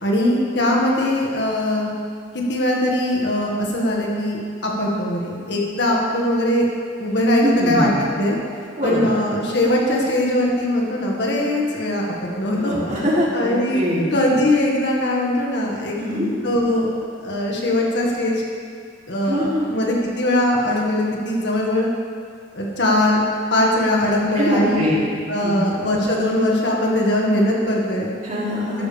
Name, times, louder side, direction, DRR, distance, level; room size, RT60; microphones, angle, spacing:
voice 1, 0.0-1.9 2.3-6.6 7.0-7.9 8.2-8.4 8.8-12.0 12.4-12.8 13.3-13.8 14.1-15.9 16.4-16.9 17.1-18.4 19.1-21.9 22.5-23.2 23.5-25.0 25.3-28.1 28.8-28.9, left 1 dB, 65° left, -2 dB, 1.9 m, -21 dB
voice 2, 7.4-8.0 8.8-9.1 12.5-14.1 16.0-16.3 19.2-19.7 24.3-24.9 25.4-25.6 28.2-28.9, equal, 40° right, -7 dB, 3.3 m, -22 dB
13.0 x 12.5 x 3.5 m, 2.1 s
head